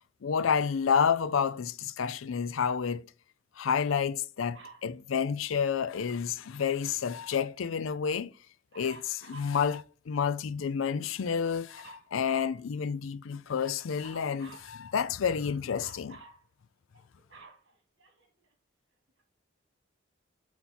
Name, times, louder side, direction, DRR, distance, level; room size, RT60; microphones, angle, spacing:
voice 1, 0.2-3.0 3.6-8.3 8.8-16.2, left 6 dB, 75° left, 0.4 m, -30 dB
Dog, 4.5-4.9 8.7-9.6 11.7-12.6 14.0-14.7 15.8-16.4 16.9-18.5 19.2-19.3, right 3 dB, 60° right, 2.5 m, -51 dB
7.2 x 4.2 x 4.3 m
head